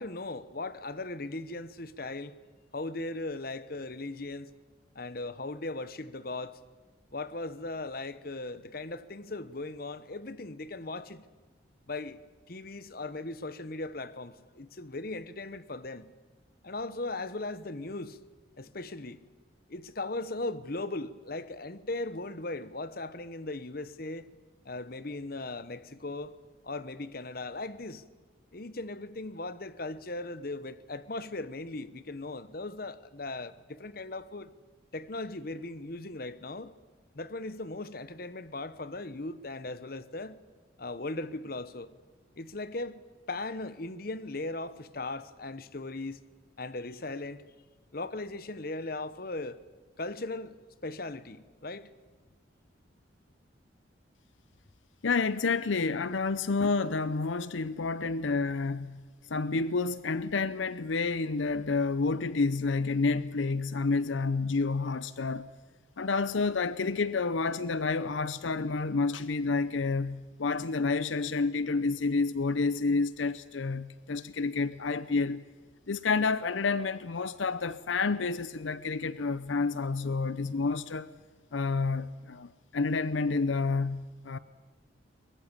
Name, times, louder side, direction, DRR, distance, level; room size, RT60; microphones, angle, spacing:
voice 1, 0.0-2.4 2.7-4.5 4.9-6.6 7.1-11.2 11.9-12.2 12.5-16.1 16.6-18.2 18.6-19.2 19.7-24.3 24.6-26.3 26.6-28.0 28.5-34.5 34.9-36.7 37.1-40.4 40.8-41.9 42.4-43.0 43.3-46.2 46.6-47.4 47.9-49.6 50.0-50.6 50.8-51.9, left 2 dB, 50° left, 1.0 m, -38 dB
voice 2, 55.0-59.0 59.3-65.5 66.0-75.4 75.9-81.1 81.5-84.4, left 4 dB, 80° left, 0.7 m, -29 dB
23.0 x 20.0 x 8.8 m
head